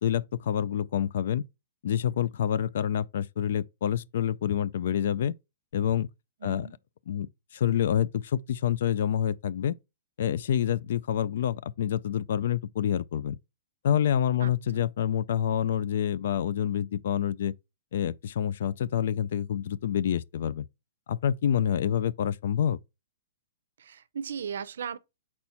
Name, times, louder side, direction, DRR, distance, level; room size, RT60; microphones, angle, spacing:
voice 1, 0.0-1.4 1.8-5.3 5.7-6.1 6.4-6.7 7.1-9.7 10.2-13.4 13.8-17.5 17.9-20.7 21.1-22.8, left 9 dB, 60° left, 0.3 m, -27 dB
voice 2, 6.4-6.8 14.4-14.5 23.8-25.0, right 7 dB, 75° right, 0.6 m, -36 dB
4.3 x 4.2 x 5.6 m
hypercardioid pair, 165°, 0 cm